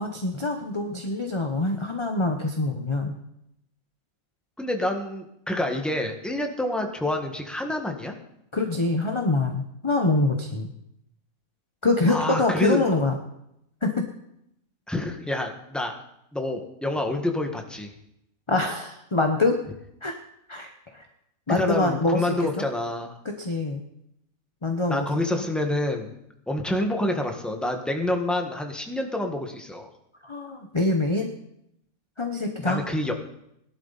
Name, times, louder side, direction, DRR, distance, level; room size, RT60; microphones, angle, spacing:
voice 1, 0.0-3.1 8.5-10.7 11.8-13.2 13.8-14.1 18.5-19.6 20.0-20.1 20.5-21.0 21.5-22.6 23.4-23.8 24.6-25.1 30.2-31.3 32.2-32.8, left 2 dB, 25° left, 4 dB, 1.0 m, -25 dB
voice 2, 4.6-8.1 12.1-12.9 14.9-15.9 16.3-17.9 21.6-23.2 24.9-26.2 26.5-29.9 32.6-33.1, left 1 dB, ahead, 3 dB, 1.5 m, -27 dB
18.0 x 12.0 x 4.1 m, 0.79 s
omnidirectional pair, 1.5 m